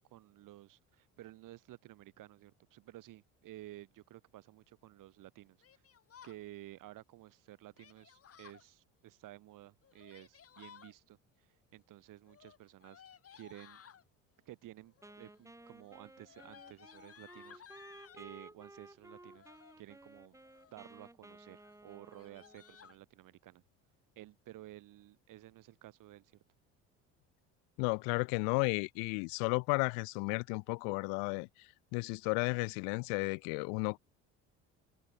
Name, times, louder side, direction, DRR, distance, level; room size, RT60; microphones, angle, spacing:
voice 1, 0.0-5.6 6.2-13.0 13.3-13.8 14.5-17.6 18.1-19.5 19.8-20.4 20.7-23.6 24.2-26.4, right 15 dB, 60° right, 7.0 m, -53 dB
Yell, 5.6-6.4 7.8-8.6 9.8-10.9 12.2-14.0 14.9-15.3 15.6-18.3 19.2-19.8 20.3-20.8 21.2-21.4 21.6-21.7 22.1-23.0, left 8 dB, 40° left, 3.2 m, -58 dB
Wind instrument woodwind instrument, 15.0-22.9, right 1 dB, 10° right, 3.9 m, -56 dB
voice 2, 27.8-31.5 31.9-34.0, left 40 dB or more, 70° left, 0.6 m, -33 dB
hypercardioid pair, 70°, 36 cm